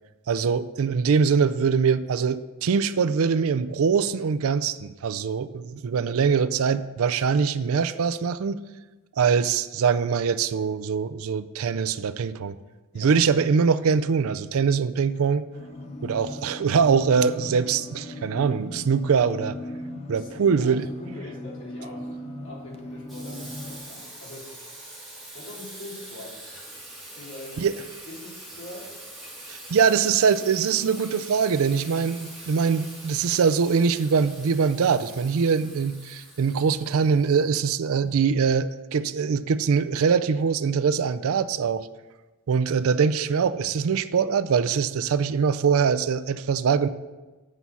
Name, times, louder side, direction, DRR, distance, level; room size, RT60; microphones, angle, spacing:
voice 1, 0.3-8.6 9.2-12.5 12.9-15.5 16.0-19.6 20.1-20.9 27.6-27.7 29.5-41.9 42.5-46.9, right 6 dB, 65° right, 14 dB, 0.4 m, -23 dB
sound 1, 15.5-23.8, left 1 dB, 30° left, 0.7 m, -38 dB
voice 2, 20.1-24.5 25.3-26.6 27.2-28.9 42.8-43.0, left 1 dB, 60° left, -4 dB, 3.0 m, -43 dB
Water tap faucet / Sink (filling or washing), 23.1-37.8, right 1 dB, ahead, 2.3 m, -43 dB
8.2 x 5.5 x 5.8 m, 1.2 s
head